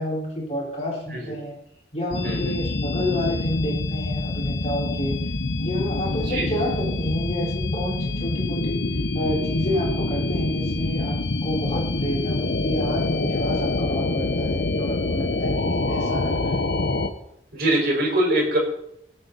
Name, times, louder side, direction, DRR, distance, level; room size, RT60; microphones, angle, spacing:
voice 1, 0.0-1.6 1.9-5.2 5.6-8.9 9.1-11.1 11.4-16.6, left 1 dB, 35° left, -3 dB, 4.4 m, -29 dB
sound 1, 2.1-17.1, left 2 dB, 75° left, 0.9 m, -26 dB
voice 2, 17.5-18.6, right 1 dB, 55° right, -1 dB, 5.0 m, -23 dB
21.0 x 8.6 x 4.1 m, 0.75 s
head